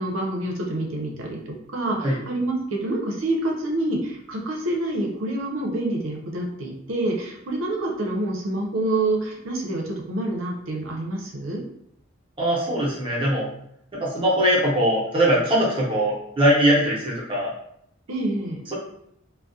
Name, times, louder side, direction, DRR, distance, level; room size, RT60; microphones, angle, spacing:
voice 1, 0.0-11.6 18.1-18.6, right 2 dB, 75° right, 0 dB, 0.6 m, -27 dB
voice 2, 12.4-13.5 14.0-17.5, equal, 25° right, -5 dB, 0.7 m, -21 dB
2.3 x 2.0 x 2.6 m, 0.73 s
head